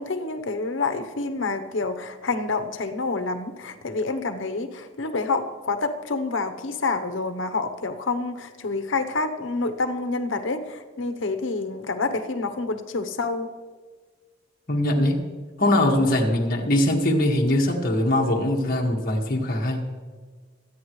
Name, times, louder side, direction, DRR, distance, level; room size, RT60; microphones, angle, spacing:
voice 1, 0.0-13.5, left 3 dB, 80° left, 8 dB, 0.9 m, -28 dB
voice 2, 14.7-15.2 15.6-19.8, left 1 dB, 50° left, 0 dB, 1.8 m, -22 dB
23.5 x 9.0 x 3.2 m, 1.5 s
head